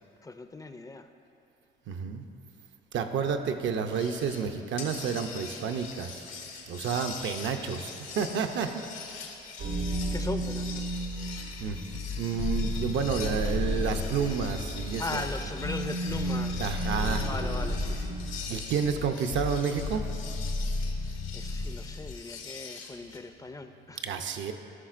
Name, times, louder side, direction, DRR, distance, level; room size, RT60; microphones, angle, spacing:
voice 1, 0.2-1.1 9.8-11.0 15.0-16.7 17.2-18.2 21.3-24.0, left 2 dB, 20° left, 8 dB, 0.4 m, -38 dB
voice 2, 1.9-2.3 2.9-6.3 6.7-8.8 11.6-11.8 12.2-15.3 16.6-17.3 18.5-20.1 24.0-24.5, right 6 dB, 70° right, 7 dB, 0.6 m, -30 dB
sound 1, 3.9-4.5 4.8-23.2, left 5 dB, 90° left, 1.0 m, -43 dB
sound 2, 9.6-18.8, right 2 dB, 90° right, 1.0 m, -35 dB
sound 3, 11.6-22.1, left 3 dB, 60° left, 0.7 m, -34 dB
14.5 x 5.6 x 2.5 m, 3.0 s
cardioid pair, 90°, 20 cm